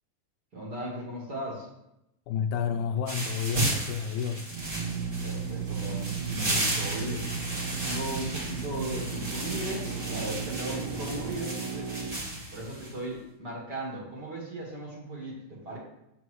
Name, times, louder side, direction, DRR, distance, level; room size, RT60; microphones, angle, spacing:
voice 1, 0.5-1.7 5.2-7.3 7.6-11.9 12.5-15.8, right 1 dB, 40° right, -5 dB, 1.9 m, -37 dB
voice 2, 2.3-4.5, left 7 dB, 80° left, 7 dB, 2.0 m, -30 dB
sound 1, 3.1-12.9, right 1 dB, 20° right, 1.4 m, -34 dB
Drill, 4.5-13.1, right 5 dB, 90° right, 1.4 m, -35 dB
8.6 x 6.5 x 3.2 m, 0.85 s
omnidirectional pair, 3.6 m